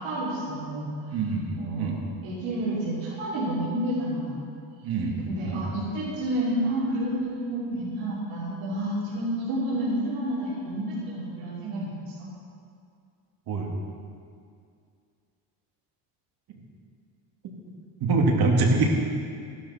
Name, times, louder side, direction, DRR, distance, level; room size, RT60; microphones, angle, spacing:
voice 1, 0.0-1.2 1.6-1.9 2.2-4.5 5.3-12.0, right 1 dB, 85° right, -10 dB, 3.5 m, -30 dB
voice 2, 1.1-2.0 4.8-5.7 13.5-13.7 18.0-18.9, right 3 dB, 55° right, 0 dB, 2.3 m, -24 dB
15.5 x 12.0 x 4.3 m, 2.3 s
cardioid pair, 135°, 44 cm